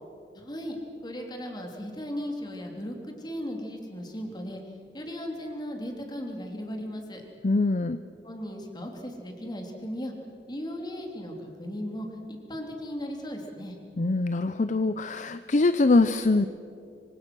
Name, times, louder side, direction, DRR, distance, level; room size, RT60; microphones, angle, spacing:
voice 1, 0.3-0.8 1.0-4.6 4.9-7.2 8.2-10.1 10.5-13.8, equal, 25° left, 2 dB, 3.2 m, -36 dB
voice 2, 7.4-8.0 14.0-16.5, left 3 dB, 45° left, 12 dB, 0.6 m, -23 dB
25.5 x 25.5 x 6.2 m, 2.8 s
head